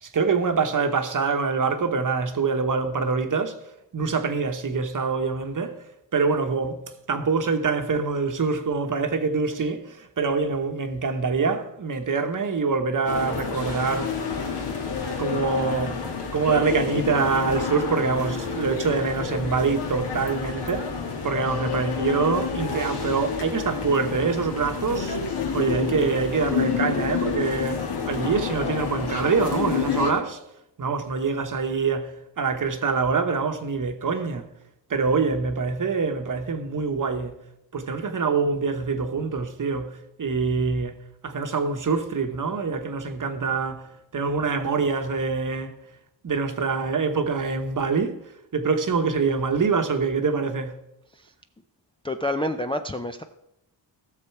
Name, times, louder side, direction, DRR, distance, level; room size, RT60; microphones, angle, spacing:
voice 1, 0.0-3.6 3.9-5.8 6.1-6.8 7.1-14.1 15.2-16.0 16.3-20.9 21.2-30.4 30.8-34.5 34.9-37.4 37.7-41.0 41.2-45.8 46.2-50.8, right 4 dB, 45° right, 1.0 m, -25 dB
sound 1, 13.0-30.1, left 6 dB, 60° left, 1.9 m, -29 dB
voice 2, 52.0-53.2, left 1 dB, 10° left, 0.4 m, -28 dB
16.0 x 6.8 x 4.6 m
wide cardioid pair, 125°, 46 cm